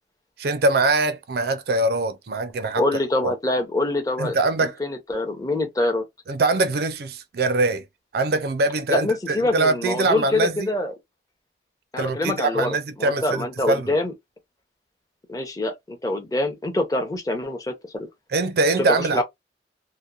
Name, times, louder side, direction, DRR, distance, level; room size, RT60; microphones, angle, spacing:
voice 1, 0.4-2.8 3.2-3.3 4.2-4.8 6.3-7.8 8.1-10.7 12.0-13.9 18.3-19.2, right 2 dB, 60° right, 0.4 m, -23 dB
voice 2, 2.8-4.4 4.8-6.0 8.9-10.9 11.9-12.7 13.0-14.1 15.3-18.1 18.8-19.2, left 2 dB, 20° left, 0.6 m, -25 dB
2.8 x 2.1 x 2.3 m
head